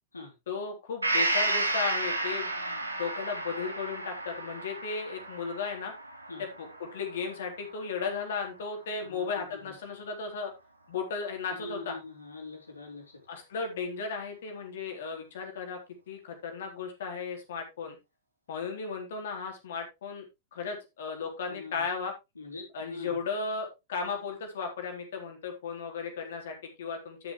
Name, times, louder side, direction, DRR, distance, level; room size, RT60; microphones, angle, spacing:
voice 1, 0.5-5.9 6.4-10.5 10.9-12.0 13.3-15.8 16.1-18.0 18.5-20.3 20.5-22.1 22.7-27.3, left 5 dB, 60° left, 3.8 m, -35 dB
Gong, 1.0-8.7 9.0-9.1, right 2 dB, 85° right, 1.6 m, -33 dB
voice 2, 9.0-9.7 11.5-13.2 21.4-21.9 22.4-23.2, left 2 dB, 80° left, 3.9 m, -43 dB
12.0 x 7.6 x 3.2 m
figure-of-eight pair, 90°, 0 cm